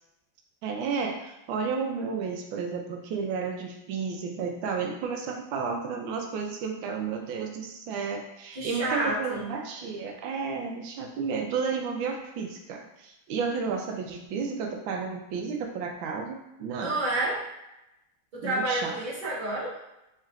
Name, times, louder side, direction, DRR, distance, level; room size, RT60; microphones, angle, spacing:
voice 1, 0.6-17.0 18.4-19.0, right 5 dB, 85° right, 2 dB, 1.3 m, -32 dB
voice 2, 8.5-9.5 16.8-17.4 18.3-19.7, right 1 dB, 30° right, -8 dB, 1.3 m, -29 dB
4.3 x 3.7 x 2.4 m, 0.91 s
omnidirectional pair, 2.1 m